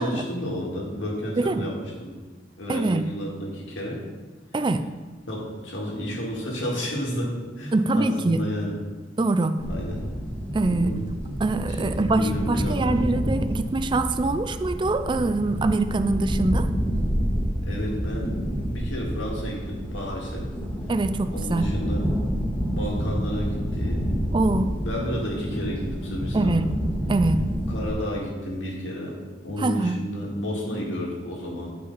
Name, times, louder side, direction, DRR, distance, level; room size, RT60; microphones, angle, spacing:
voice 1, 0.0-2.1 2.6-4.0 5.3-8.8 9.7-10.1 10.6-11.0 11.7-13.0 17.7-20.5 21.3-22.1 22.6-24.1 24.8-26.7 27.7-29.1 29.4-31.8, equal, 85° left, -3 dB, 2.1 m, -31 dB
voice 2, 1.4-1.7 2.7-3.1 4.5-4.8 7.7-8.4 9.2-9.5 10.5-10.9 11.4-16.7 20.9-21.7 24.3-24.7 26.3-26.7 27.1-27.5 29.6-30.0, right 2 dB, 25° right, 10 dB, 0.4 m, -24 dB
sound 1, 9.6-27.9, equal, 5° left, 1.0 m, -28 dB
10.5 x 5.1 x 4.1 m, 1.3 s
head